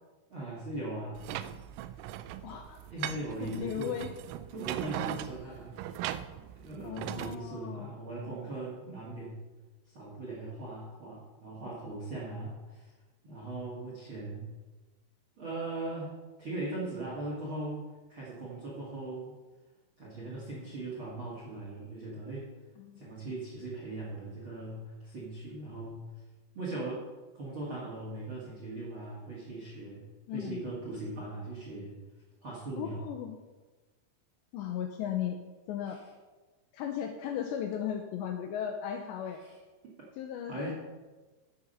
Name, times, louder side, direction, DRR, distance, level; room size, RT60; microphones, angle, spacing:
voice 1, 0.3-1.3 2.9-4.0 4.5-6.1 6.4-9.4 9.9-12.9 13.2-14.5 15.4-16.1 16.4-19.3 20.0-22.5 23.0-26.0 26.5-27.1 27.3-30.0 30.3-32.0 32.4-33.0 40.5-40.7, right 2 dB, 45° right, -4 dB, 1.6 m, -39 dB
sound 1, 1.2-7.4, right 12 dB, 90° right, 3.2 m, -39 dB
voice 2, 2.4-2.8 3.4-4.1 4.8-4.9 6.8-7.9 22.8-23.1 30.3-30.7 32.8-33.4 34.5-35.4 35.7-36.0 36.7-39.4 40.2-40.7, left 9 dB, 80° left, 4 dB, 2.6 m, -36 dB
14.5 x 7.0 x 5.6 m, 1.3 s
omnidirectional pair, 5.7 m